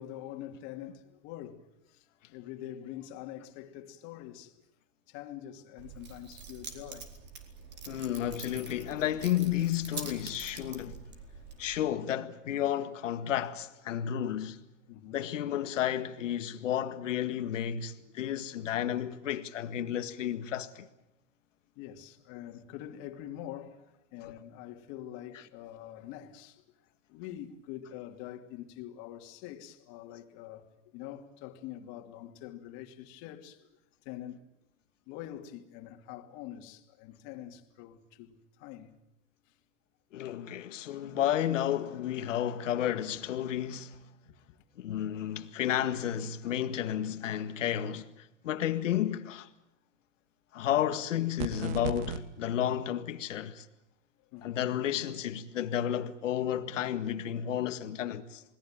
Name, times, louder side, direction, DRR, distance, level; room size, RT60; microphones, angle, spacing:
voice 1, 0.0-4.6 5.1-7.1 11.6-11.7 14.9-15.2 18.1-18.2 21.7-26.6 27.1-30.7 30.9-33.7 34.0-34.5 35.1-38.9 44.5-44.6 44.8-44.9 54.3-54.6, left 12 dB, 50° left, 2.9 m, -45 dB
Keys jangling, 5.8-11.8, right 5 dB, 30° right, 4.6 m, -45 dB
voice 2, 7.9-11.0 11.6-14.6 15.1-20.9 40.1-44.0 44.8-49.5 50.5-53.7 54.4-58.4, left 10 dB, 80° left, 1.9 m, -32 dB
sound 1, 51.4-52.2, right 8 dB, 55° right, 2.4 m, -35 dB
28.5 x 20.5 x 9.1 m
hypercardioid pair, 120°, 37 cm